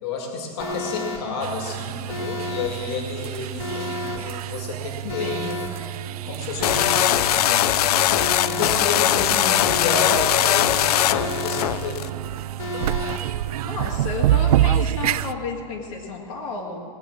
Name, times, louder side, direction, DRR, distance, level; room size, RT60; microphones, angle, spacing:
voice 1, 0.0-5.4 6.0-12.3, left 3 dB, 45° left, 2 dB, 2.1 m, -31 dB
Alarm, 0.6-1.2 2.1-2.7 3.6-4.2 5.1-5.7 6.6-7.2 8.1-8.7 9.6-10.2 11.1-11.7 12.6-13.2, left 2 dB, 20° left, 1.5 m, -31 dB
sound 1, 1.4-15.3, right 12 dB, 85° right, 0.4 m, -28 dB
voice 2, 5.0-5.6 13.6-16.8, left 4 dB, 60° left, -2 dB, 1.9 m, -32 dB
sound 2, 6.6-12.1, left 12 dB, 85° left, 0.4 m, -20 dB
19.5 x 8.2 x 6.2 m, 2.2 s
supercardioid pair, 180°, 19 cm